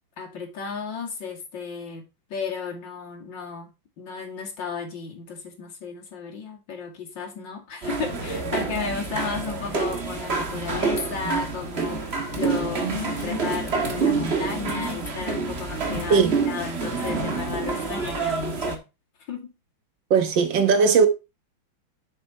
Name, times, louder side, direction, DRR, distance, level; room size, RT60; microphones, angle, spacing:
voice 1, 0.2-2.0 2.3-3.7 4.0-18.8 19.3-19.5, left 5 dB, 65° left, 3.0 m, -34 dB
sound 1, 7.8-18.8, right 4 dB, 35° right, 1.5 m, -27 dB
voice 2, 20.1-21.1, right 5 dB, 65° right, 1.9 m, -18 dB
6.8 x 6.7 x 4.3 m
omnidirectional pair, 2.2 m